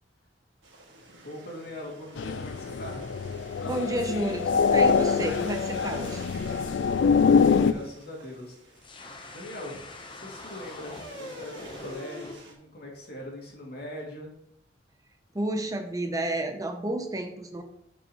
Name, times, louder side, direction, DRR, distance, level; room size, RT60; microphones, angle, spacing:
sound 1, 0.6-12.5, right 1 dB, 70° right, 1.8 m, -48 dB
voice 1, 1.2-3.0 6.7-8.9 9.3-9.8 10.1-14.3, left 1 dB, 55° left, -1 dB, 2.1 m, -41 dB
sound 2, 2.2-7.7, left 6 dB, 75° left, 0.4 m, -24 dB
voice 2, 3.6-6.3 15.3-17.6, right 1 dB, 20° right, 5 dB, 0.6 m, -31 dB
sound 3, 8.8-12.4, left 2 dB, 25° left, 0.7 m, -43 dB
11.5 x 5.3 x 2.9 m, 0.76 s
head